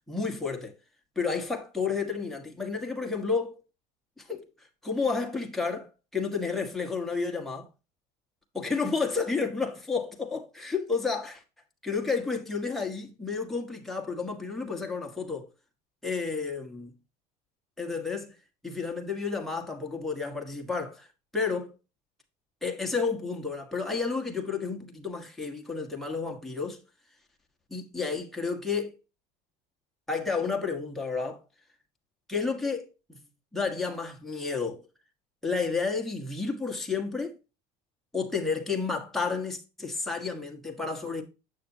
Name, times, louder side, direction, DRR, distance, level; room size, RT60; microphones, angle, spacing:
voice 1, 0.1-0.7 1.1-3.6 4.2-4.4 4.8-7.7 8.5-11.4 11.8-15.5 16.0-17.0 17.8-18.3 18.6-21.1 21.3-21.7 22.6-26.8 27.7-28.9 30.1-31.4 32.3-33.2 33.5-34.8 35.4-37.3 38.1-41.2, left 4 dB, ahead, 1.4 m, -31 dB
8.4 x 6.6 x 2.7 m
cardioid pair, 145°, 19 cm